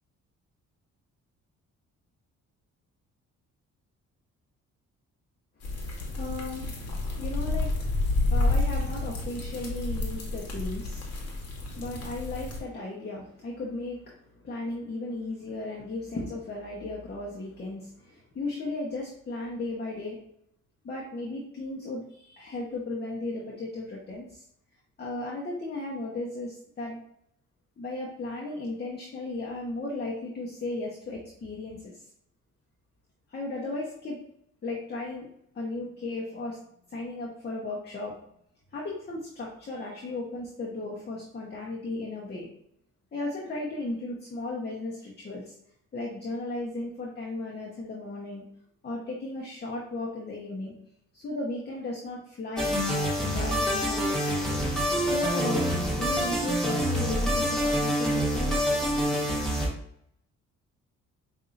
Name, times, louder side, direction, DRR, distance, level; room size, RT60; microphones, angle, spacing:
sound 1, 5.6-12.6, left 2 dB, 55° left, 1.3 m, -30 dB
voice 1, 5.6-11.1 11.7-20.2 20.8-24.4 25.0-27.0 27.8-32.0 33.3-34.2 34.6-35.3 35.5-36.6 36.9-38.2 38.7-42.5 43.1-45.5 45.9-48.4 48.8-50.7 51.1-52.8 53.3-54.3 55.1-58.7, left 2 dB, 35° left, -3 dB, 1.0 m, -35 dB
sound 2, 52.6-59.7, equal, ahead, 1.3 m, -26 dB
5.4 x 2.7 x 2.6 m, 0.73 s
cardioid pair, 90°, 30 cm